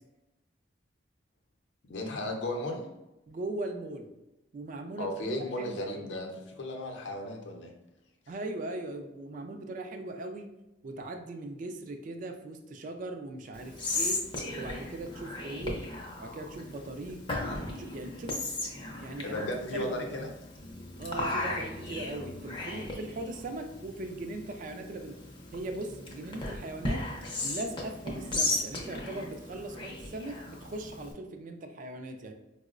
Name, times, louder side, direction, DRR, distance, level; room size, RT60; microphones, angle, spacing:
voice 1, 1.9-2.9 5.0-7.7 19.2-20.3, left 1 dB, 70° left, 1 dB, 0.6 m, -35 dB
voice 2, 3.3-4.1 4.5-6.1 8.3-10.5 10.8-14.2 14.5-15.8 16.2-17.2 17.7-18.3 19.0-19.4 19.7-20.2 21.0-25.1 25.5-27.0 27.4-32.3, right 2 dB, 45° right, 5 dB, 0.3 m, -39 dB
Whispering, 13.5-31.1, left 2 dB, 25° left, 0.5 m, -36 dB
4.4 x 2.0 x 2.4 m, 0.97 s
head